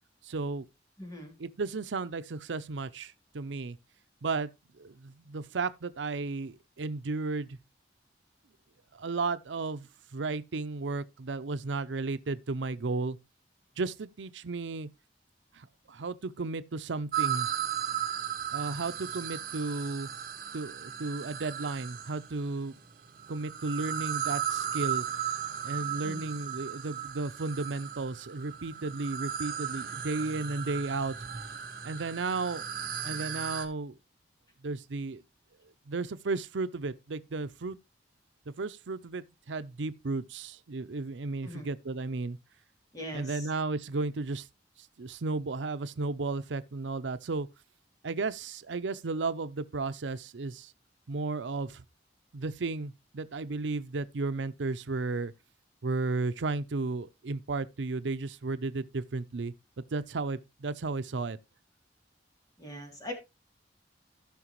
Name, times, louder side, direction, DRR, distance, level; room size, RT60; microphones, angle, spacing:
voice 1, 0.2-0.7 1.4-3.8 4.2-4.5 4.8-7.6 8.9-13.2 13.8-14.9 15.5-17.5 18.5-20.1 20.5-22.8 23.3-25.1 25.6-31.2 31.8-32.7 33.0-33.9 34.6-35.2 35.9-37.8 38.5-42.4 43.1-44.5 45.0-47.5 48.0-50.7 51.1-51.8 52.3-55.3 55.8-61.4, right 3 dB, 90° right, 0.6 m, -34 dB
voice 2, 1.0-1.3 26.0-26.3 41.4-41.7 42.9-43.2 62.6-63.1, left 1 dB, 20° left, 2.8 m, -41 dB
sound 1, 17.1-22.3 23.2-33.7, right 9 dB, 50° right, 1.5 m, -36 dB
15.0 x 5.9 x 3.0 m
head